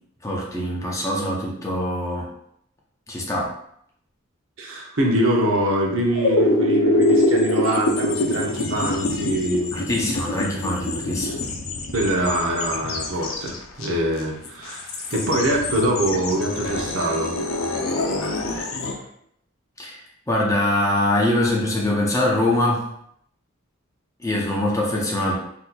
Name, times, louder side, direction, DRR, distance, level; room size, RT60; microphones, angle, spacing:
voice 1, 0.2-2.3 3.1-3.6 9.7-11.4 18.4-18.5 19.8-20.0 20.3-22.9 24.2-25.4, left 1 dB, 15° left, -3 dB, 0.5 m, -23 dB
voice 2, 4.6-9.7 11.9-17.4, right 1 dB, 75° right, -1 dB, 0.7 m, -24 dB
sound 1, 5.9-18.9, left 1 dB, 80° left, 0.6 m, -24 dB
4.0 x 2.7 x 2.2 m, 0.72 s
head